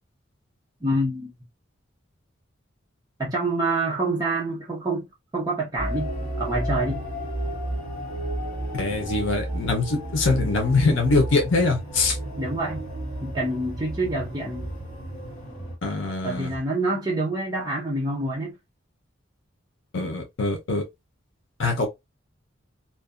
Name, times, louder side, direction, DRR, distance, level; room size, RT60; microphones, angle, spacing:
voice 1, 0.8-1.3 3.2-5.1 5.3-6.1 6.4-7.0 12.4-12.8 13.2-14.7 16.2-18.6, right 2 dB, 20° right, 0.5 m, -26 dB
sound 1, 5.8-15.8, right 1 dB, 35° left, 1.4 m, -32 dB
voice 2, 8.7-12.2 15.8-16.5 19.9-20.8 21.6-21.9, left 3 dB, 70° left, 0.7 m, -23 dB
2.6 x 2.1 x 2.4 m
head